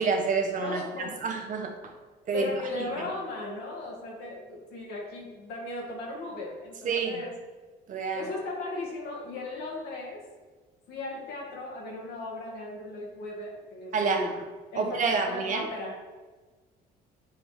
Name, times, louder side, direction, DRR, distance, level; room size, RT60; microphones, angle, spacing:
voice 1, 0.0-1.9 2.3-2.5 6.8-7.2 7.9-8.3 13.9-14.3 14.7-15.6, right 4 dB, 50° right, 4 dB, 1.1 m, -28 dB
voice 2, 0.6-1.2 2.3-7.3 8.1-10.3 10.9-14.3 14.7-16.0, left 2 dB, 75° left, -3 dB, 2.2 m, -37 dB
9.5 x 3.5 x 4.8 m, 1.3 s
cardioid pair, 110°, 17 cm